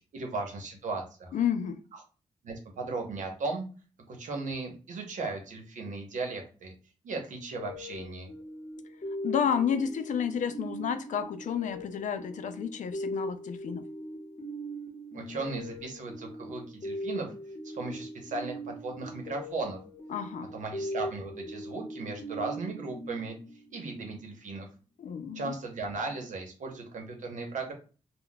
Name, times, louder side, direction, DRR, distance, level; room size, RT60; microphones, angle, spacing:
voice 1, 0.1-1.4 2.4-3.6 4.1-6.7 7.0-8.3 15.1-17.3 17.6-19.8 20.5-23.3 23.7-24.7 25.3-27.7, right 3 dB, 85° right, 0.8 m, -36 dB
voice 2, 1.3-1.8 9.2-13.8 20.1-20.5 25.0-25.6, left 8 dB, 80° left, 0.4 m, -31 dB
sound 1, 7.6-23.9, equal, 35° left, 0.8 m, -40 dB
2.2 x 2.2 x 3.8 m
wide cardioid pair, 135°, 13 cm